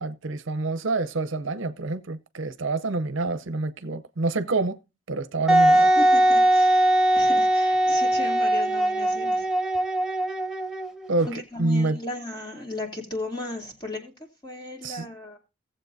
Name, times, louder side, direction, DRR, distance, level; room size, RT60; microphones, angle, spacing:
voice 1, 0.0-4.8 5.1-5.9 11.1-12.0 14.8-15.1, right 2 dB, 65° right, 0.7 m, -27 dB
Wind instrument woodwind instrument, 5.5-11.1, right 1 dB, 5° right, 0.6 m, -20 dB
voice 2, 5.7-9.4 11.3-14.1 14.4-15.4, left 2 dB, 20° left, 2.7 m, -36 dB
17.5 x 7.4 x 2.7 m
head